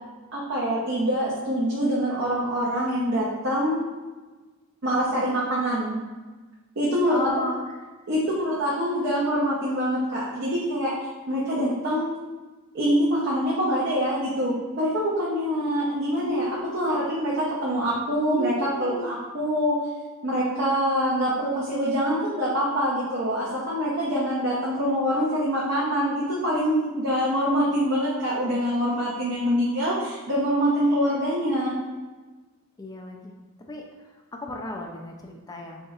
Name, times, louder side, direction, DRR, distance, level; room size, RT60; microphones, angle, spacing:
voice 1, 0.3-3.8 4.8-6.0 6.8-7.2 8.1-10.9 11.3-12.1 12.7-19.9 20.2-31.8, equal, 55° right, -7 dB, 0.7 m, -25 dB
voice 2, 7.1-7.8 32.8-33.3 33.7-35.9, left 2 dB, 15° left, 0 dB, 0.3 m, -34 dB
sound 1, 16.2-17.1 18.2-19.1, equal, 70° left, 0.9 m, -32 dB
4.4 x 3.0 x 2.4 m, 1.3 s
head